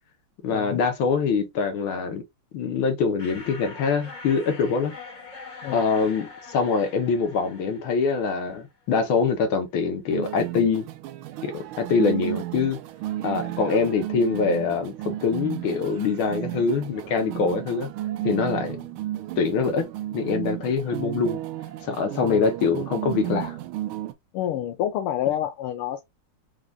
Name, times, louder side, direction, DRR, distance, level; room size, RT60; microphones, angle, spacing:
voice 1, 0.4-2.2 2.5-4.9 5.7-10.9 11.4-12.8 13.2-17.9 18.2-18.8 19.4-19.9 20.1-21.4 21.8-23.6, left 5 dB, 75° left, 1.7 m, -24 dB
sound 1, 3.2-8.7, left 3 dB, 30° left, 1.0 m, -43 dB
sound 2, 10.1-24.1, right 14 dB, 80° right, 1.5 m, -33 dB
voice 2, 24.3-26.0, left 11 dB, 90° left, 1.6 m, -28 dB
4.8 x 3.9 x 2.3 m
omnidirectional pair, 2.3 m